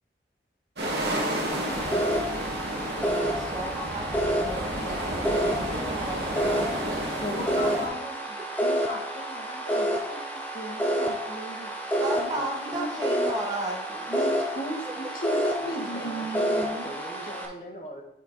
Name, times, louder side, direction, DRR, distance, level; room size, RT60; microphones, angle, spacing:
sound 1, 0.8-7.9, right 1 dB, 80° right, 1.7 m, -31 dB
sound 2, 1.5-17.5, equal, 10° left, 0.7 m, -29 dB
voice 1, 3.4-7.2 11.9-14.2, right 1 dB, 20° right, -1 dB, 1.0 m, -35 dB
voice 2, 7.2-8.3 8.6-13.1 14.1-16.9, equal, 55° left, 0 dB, 1.4 m, -37 dB
voice 3, 15.5-18.0, equal, 35° left, 1 dB, 1.1 m, -41 dB
7.8 x 4.5 x 3.9 m, 0.83 s
head